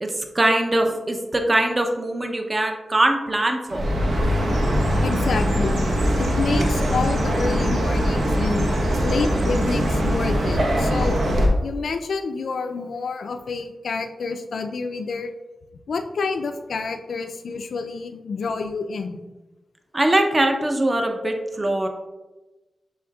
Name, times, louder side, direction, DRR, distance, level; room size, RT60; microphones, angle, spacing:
voice 1, 0.0-3.9 19.9-21.9, right 1 dB, 30° right, 4 dB, 0.5 m, -22 dB
Chirp tweet, 3.7-11.5, equal, 85° right, 0.8 m, -21 dB
voice 2, 5.0-5.9 6.2-8.7 9.0-11.2 11.6-15.3 15.9-19.2 21.2-21.4, left 4 dB, 80° left, 7 dB, 0.4 m, -28 dB
6.4 x 3.4 x 2.3 m, 1.1 s
cardioid pair, 75°, 0 cm